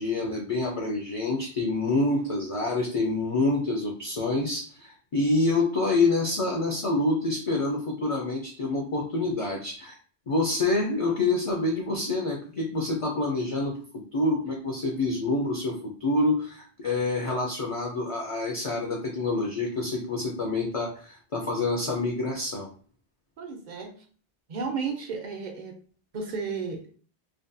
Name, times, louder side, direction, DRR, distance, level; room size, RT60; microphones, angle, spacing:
voice 1, 0.0-10.0 10.3-22.7, left 2 dB, 50° left, 0 dB, 0.4 m, -27 dB
voice 2, 23.4-24.0 24.5-25.8 26.1-27.0, right 5 dB, 55° right, 3 dB, 0.5 m, -33 dB
2.5 x 2.2 x 2.5 m, 0.41 s
omnidirectional pair, 1.1 m